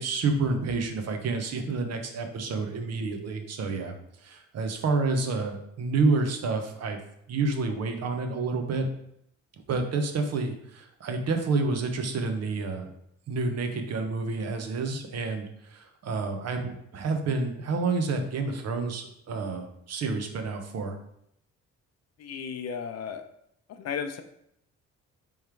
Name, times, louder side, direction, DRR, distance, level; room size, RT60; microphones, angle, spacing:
voice 1, 0.0-7.0 7.3-8.9 9.7-12.9 13.3-21.0, right 3 dB, 55° right, 6 dB, 0.8 m, -29 dB
voice 2, 22.2-23.3 23.7-24.2, left 7 dB, 55° left, 8 dB, 0.6 m, -34 dB
3.6 x 3.1 x 4.4 m, 0.73 s
cardioid pair, 90°, 30 cm